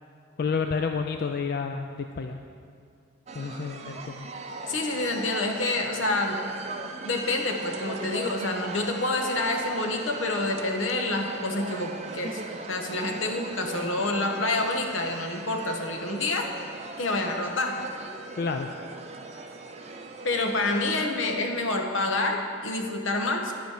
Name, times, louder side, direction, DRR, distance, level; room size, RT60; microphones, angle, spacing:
voice 1, 0.4-2.4 3.3-4.3 18.4-18.7, left 5 dB, 50° left, 5 dB, 0.3 m, -30 dB
sound 1, 3.3-21.1, right 3 dB, 35° right, 0.5 m, -39 dB
voice 2, 4.7-6.4 7.0-12.4 12.7-16.5 17.0-17.8 20.2-23.5, left 2 dB, 80° left, 3 dB, 1.1 m, -28 dB
10.5 x 8.0 x 4.9 m, 2.3 s
head